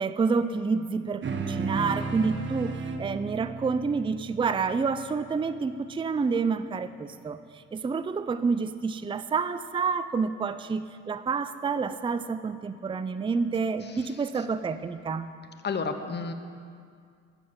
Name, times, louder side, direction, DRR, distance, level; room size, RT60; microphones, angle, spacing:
voice 1, 0.0-7.4 7.7-15.3, right 5 dB, 15° right, 12 dB, 0.5 m, -28 dB
sound 1, 1.2-6.0, right 4 dB, 40° right, 1.3 m, -34 dB
voice 2, 13.8-14.4 15.6-16.3, left 4 dB, 35° left, 8 dB, 1.1 m, -33 dB
15.0 x 7.8 x 6.9 m, 2.2 s
cardioid pair, 90°, 30 cm